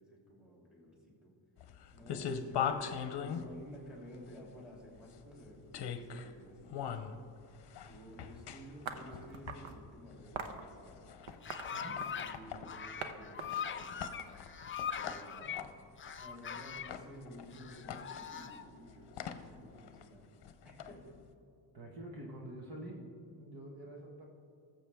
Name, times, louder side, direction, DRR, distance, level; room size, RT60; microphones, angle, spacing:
voice 1, 0.0-1.3 1.9-2.8 3.1-7.3 7.8-11.1 11.7-14.2 14.9-15.6 16.2-20.4 20.6-21.1, equal, ahead, -3 dB, 2.8 m, -53 dB
sound 1, 1.6-21.3, left 7 dB, 60° left, 0.8 m, -43 dB
sound 2, 8.9-9.8 10.3-10.6 11.3-12.4 13.0-13.1 13.4-14.8, right 6 dB, 85° right, 0.9 m, -43 dB
sound 3, 11.2-12.4 12.6-15.6 16.0-16.9 17.5-18.6, left 7 dB, 30° left, 0.4 m, -41 dB
voice 2, 21.7-23.0 23.4-24.3, right 1 dB, 50° right, -1 dB, 1.4 m, -47 dB
19.5 x 7.4 x 3.5 m, 2.5 s
wide cardioid pair, 160°, 46 cm